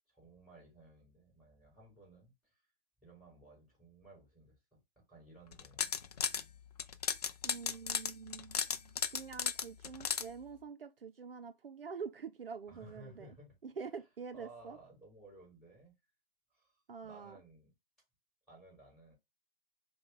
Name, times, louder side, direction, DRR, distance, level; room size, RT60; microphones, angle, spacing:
voice 1, 0.1-2.3 3.0-4.5 5.1-5.9 12.7-13.6 14.3-15.9 16.5-17.7 18.5-19.1, right 1 dB, ahead, 3.0 m, -57 dB
sound 1, 5.5-6.4 6.8-10.2, left 7 dB, 40° left, 0.4 m, -35 dB
voice 2, 7.4-13.3 13.6-14.8 16.9-17.4, right 6 dB, 70° right, 0.6 m, -46 dB
5.3 x 2.3 x 3.8 m
figure-of-eight pair, 130°, 30 cm